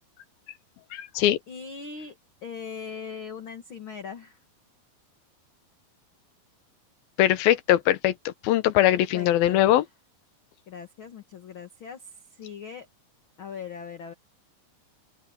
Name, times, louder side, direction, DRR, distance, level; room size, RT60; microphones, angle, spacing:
voice 1, 0.9-1.4 7.2-9.8, left 13 dB, 85° left, 2.9 m, -21 dB
voice 2, 1.5-4.4 8.9-9.8 10.7-12.9 13.4-14.1, left 6 dB, 50° left, 1.7 m, -40 dB
open air
omnidirectional pair, 4.1 m